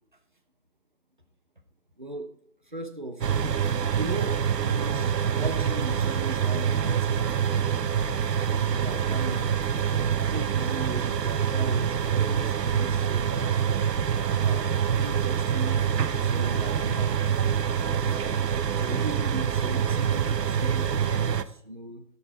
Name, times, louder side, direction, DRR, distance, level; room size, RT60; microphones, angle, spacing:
voice 1, 2.0-2.3 2.6-3.5 3.9-7.2 8.5-9.5 10.0-13.6 14.3-14.7 14.9-15.9 16.2-17.2 18.1-22.0, right 1 dB, 30° right, 7 dB, 0.7 m, -38 dB
sound 1, 3.2-21.4, right 8 dB, 80° right, 0.8 m, -25 dB
13.0 x 7.2 x 4.6 m, 0.68 s
hypercardioid pair, 175°, 48 cm